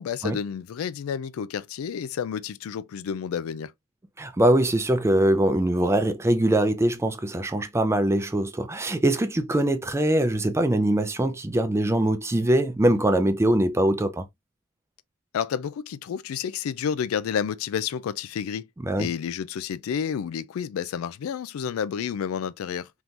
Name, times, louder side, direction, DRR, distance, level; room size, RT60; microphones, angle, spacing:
voice 1, 0.0-3.7 15.3-18.7 19.0-22.9, left 7 dB, 85° left, 0.3 m, -30 dB
voice 2, 4.2-14.2 18.8-19.1, right 1 dB, 15° right, 0.4 m, -22 dB
3.6 x 2.9 x 2.5 m
head